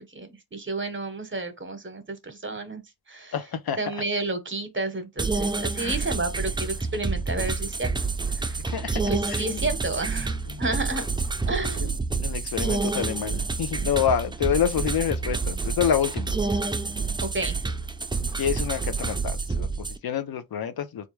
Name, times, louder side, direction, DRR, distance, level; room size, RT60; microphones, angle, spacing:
voice 1, 0.0-2.8 3.1-3.3 3.8-7.9 8.4-8.6 8.9-11.0 11.5-12.0 17.0-17.6, right 2 dB, 30° right, 1.0 m, -31 dB
voice 2, 3.3-3.8 5.8-6.0 7.0-7.1 8.7-9.0 9.3-9.6 10.5-10.6 11.8-16.4 18.4-21.1, left 8 dB, 75° left, 0.7 m, -28 dB
sound 1, 5.2-20.0, right 4 dB, 15° right, 0.4 m, -28 dB
3.3 x 2.5 x 3.1 m
cardioid pair, 60°, 37 cm